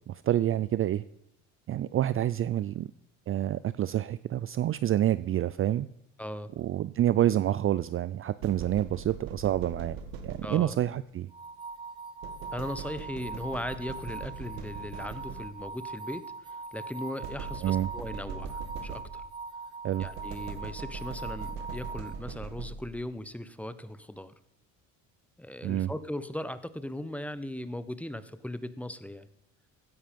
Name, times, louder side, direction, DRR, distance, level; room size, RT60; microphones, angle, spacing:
voice 1, 0.1-1.0 1.7-2.9 3.3-5.9 6.6-10.0 10.2-11.3 17.6-17.9 19.8-20.1 25.6-25.9, right 12 dB, 40° right, 16 dB, 0.4 m, -28 dB
voice 2, 6.2-6.5 10.4-10.8 12.5-16.2 16.7-19.2 20.0-24.3 25.4-29.3, left 1 dB, 5° left, 14 dB, 0.9 m, -38 dB
sound 1, 8.4-10.9 12.2-15.8 17.2-19.4 20.0-23.1, right 5 dB, 80° right, 2.1 m, -41 dB
sound 2, 11.3-22.1, right 4 dB, 15° right, 1.9 m, -41 dB
16.0 x 10.0 x 5.2 m, 0.84 s
supercardioid pair, 95°, 35 cm